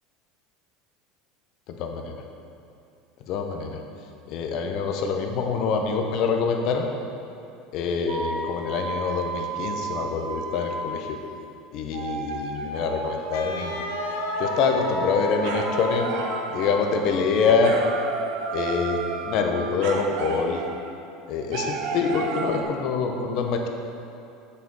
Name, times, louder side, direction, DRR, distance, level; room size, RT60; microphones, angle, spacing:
voice 1, 1.7-2.1 3.3-3.8 4.3-6.9 7.7-11.2 11.7-13.8 14.4-16.1 16.5-17.8 18.5-20.6 21.3-23.7, left 5 dB, 55° left, 3 dB, 1.0 m, -25 dB
sound 1, 8.1-11.2 11.9-20.9 21.5-22.6, right 3 dB, 70° right, 1.0 m, -32 dB
Wind instrument woodwind instrument, 13.3-17.4, left 6 dB, 85° left, 0.7 m, -35 dB
7.4 x 6.7 x 5.5 m, 2.6 s
supercardioid pair, 125°, 0 cm